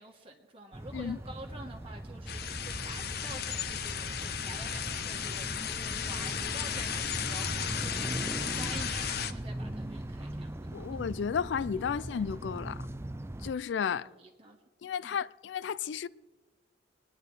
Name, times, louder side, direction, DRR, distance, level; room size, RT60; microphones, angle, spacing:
voice 1, 0.0-10.8 13.9-14.6 15.0-15.2, right 2 dB, 30° right, 1.4 m, -48 dB
sound 1, 0.7-13.5, right 1 dB, 15° right, 0.5 m, -40 dB
sound 2, 2.3-9.3, left 8 dB, 55° left, 0.7 m, -35 dB
sound 3, 5.1-12.9, left 1 dB, 5° left, 0.8 m, -57 dB
voice 2, 10.7-12.9 13.4-14.1 14.8-16.1, left 7 dB, 70° left, 0.4 m, -33 dB
25.5 x 10.0 x 4.7 m
head